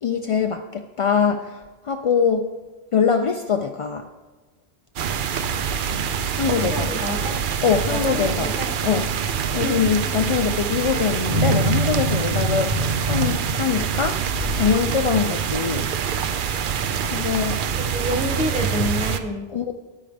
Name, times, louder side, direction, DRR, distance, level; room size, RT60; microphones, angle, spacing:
voice 1, 0.0-2.5 2.9-4.1 6.3-6.9 7.6-8.5 8.8-9.1 9.5-14.3 14.5-15.9 17.0-17.6 19.5-19.7, left 6 dB, 60° left, 5 dB, 0.3 m, -23 dB
sound 1, 5.0-19.2, right 7 dB, 60° right, 0.7 m, -25 dB
voice 2, 6.5-7.4 7.9-9.0 9.6-9.8 17.7-19.4, left 1 dB, 5° right, 0 dB, 1.5 m, -28 dB
sound 2, 11.3-14.7 15.2-15.3, right 1 dB, 25° right, 1.1 m, -25 dB
13.5 x 9.3 x 3.4 m, 1.2 s
omnidirectional pair, 1.1 m